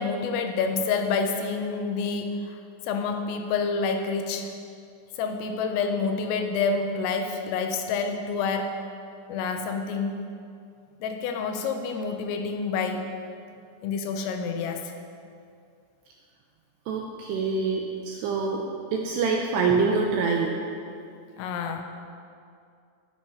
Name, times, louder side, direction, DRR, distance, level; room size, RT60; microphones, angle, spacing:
voice 1, 0.0-4.5 5.2-8.9 9.3-10.3 11.0-13.1 13.8-14.9 21.4-21.8, left 4 dB, 90° left, 5 dB, 3.6 m, -28 dB
voice 2, 16.9-18.7 18.9-20.6, right 4 dB, 80° right, 0 dB, 2.5 m, -25 dB
18.5 x 6.4 x 5.7 m, 2.4 s
omnidirectional pair, 5.7 m